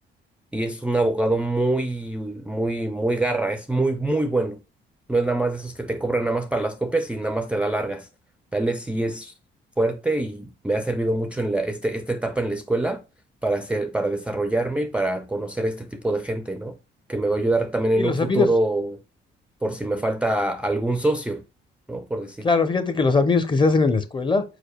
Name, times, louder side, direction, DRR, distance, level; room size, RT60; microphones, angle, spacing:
voice 1, 0.5-4.6 5.1-8.1 8.5-9.3 9.8-13.0 13.4-16.8 17.1-19.0 19.6-21.4 21.9-22.5, right 2 dB, 5° right, 0.4 m, -25 dB
voice 2, 18.0-18.5 22.4-24.4, left 4 dB, 25° left, 0.7 m, -20 dB
4.9 x 4.5 x 2.2 m
cardioid pair, 90°, 20 cm